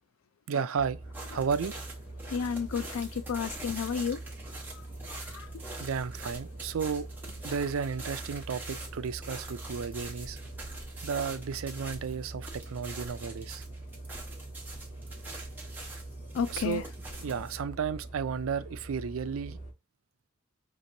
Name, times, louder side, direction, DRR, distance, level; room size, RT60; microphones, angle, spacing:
voice 1, 0.5-1.0 1.3-1.7 5.8-7.1 7.4-10.4 11.0-13.6 16.5-16.8 17.2-19.6, right 6 dB, 75° right, 0.4 m, -33 dB
sound 1, 0.7-19.7, right 2 dB, 40° left, 1.7 m, -44 dB
sound 2, 1.1-17.6, right 2 dB, 10° right, 1.1 m, -45 dB
voice 2, 2.3-4.2 5.1-5.6 16.3-16.8, left 6 dB, 85° left, 0.4 m, -32 dB
5.1 x 3.0 x 2.6 m
head